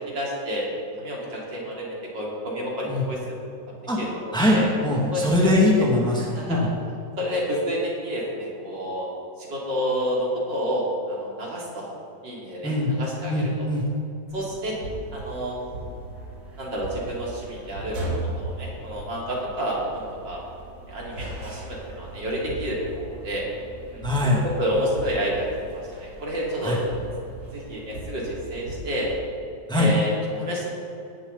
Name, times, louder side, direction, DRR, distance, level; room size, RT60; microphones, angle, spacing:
voice 1, 0.1-0.7 1.0-3.3 3.7-4.7 5.1-5.5 6.2-6.7 7.2-9.1 9.4-11.9 12.2-13.5 14.3-14.8 15.1-15.6 16.6-20.4 20.9-23.4 23.9-24.3 24.6-26.8 27.5-29.1 29.7-30.1 30.4-30.7, equal, 90° right, -4 dB, 3.7 m, -29 dB
voice 2, 4.3-6.7 12.6-12.9 13.3-13.8 24.0-24.4 26.6-26.8 29.7-29.9, left 1 dB, ahead, -3 dB, 2.0 m, -21 dB
sound 1, 14.3-29.2, right 1 dB, 60° right, 2.7 m, -38 dB
18.0 x 11.5 x 4.0 m, 2.7 s
omnidirectional pair, 1.9 m